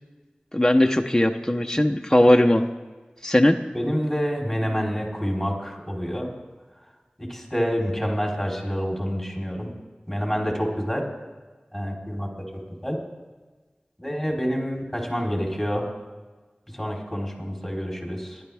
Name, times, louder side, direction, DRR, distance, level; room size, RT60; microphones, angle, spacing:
voice 1, 0.5-2.6 3.2-3.6, left 1 dB, 15° left, 3 dB, 0.8 m, -18 dB
voice 2, 3.7-6.3 7.3-9.7 10.1-11.0 11.7-12.3 12.8-13.0 14.0-15.8 16.7-18.4, equal, ahead, -1 dB, 3.8 m, -27 dB
29.0 x 11.5 x 3.5 m, 1.3 s
wide cardioid pair, 50°, 3 cm